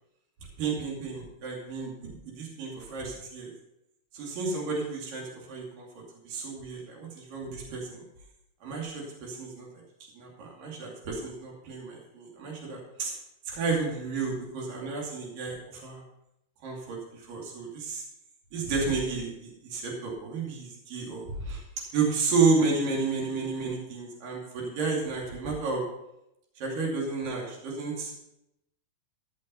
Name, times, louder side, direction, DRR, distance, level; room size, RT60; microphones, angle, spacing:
voice 1, 0.6-3.5 4.1-5.9 6.2-8.0 8.6-9.7 10.2-13.1 13.5-16.0 16.6-18.0 18.5-21.6 21.9-25.8 26.6-28.2, right 4 dB, 60° right, -2 dB, 4.1 m, -31 dB
14.5 x 6.3 x 5.6 m, 0.84 s
omnidirectional pair, 4.5 m